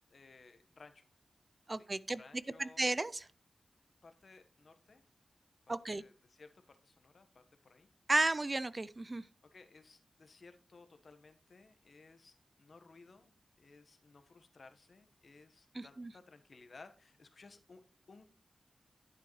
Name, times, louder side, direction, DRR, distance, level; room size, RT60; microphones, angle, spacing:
voice 1, 0.1-1.1 1.8-2.8 4.0-5.0 5.7-7.9 9.5-17.8 18.1-18.2, left 3 dB, 65° left, 1.2 m, -59 dB
voice 2, 1.7-2.2 2.6-3.2 5.7-6.0 8.1-9.2 15.7-16.1, right 2 dB, 35° right, 0.5 m, -33 dB
11.0 x 8.4 x 3.1 m
cardioid pair, 60°, 0 cm